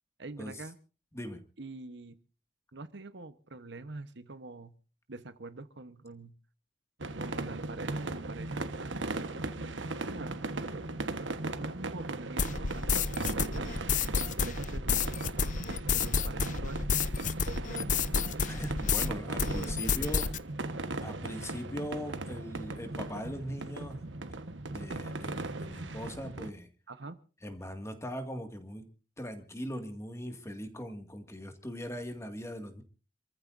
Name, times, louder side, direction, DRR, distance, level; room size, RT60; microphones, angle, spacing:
voice 1, 0.2-0.8 1.6-2.2 2.7-4.7 5.1-6.3 7.2-9.3 10.1-10.4 11.6-15.2 15.9-16.8 17.5-18.1 19.5-20.2 26.9-27.2, right 2 dB, 65° right, 11 dB, 1.1 m, -44 dB
sound 1, 7.0-26.5, right 2 dB, 85° right, 1.3 m, -38 dB
sound 2, 12.4-19.1 19.4-20.4, left 6 dB, 45° left, 0.7 m, -30 dB
voice 2, 18.5-20.3 21.0-24.0 24.7-26.7 27.4-28.9 29.2-32.8, equal, 15° left, 6 dB, 2.1 m, -40 dB
28.5 x 14.5 x 2.6 m, 0.34 s
head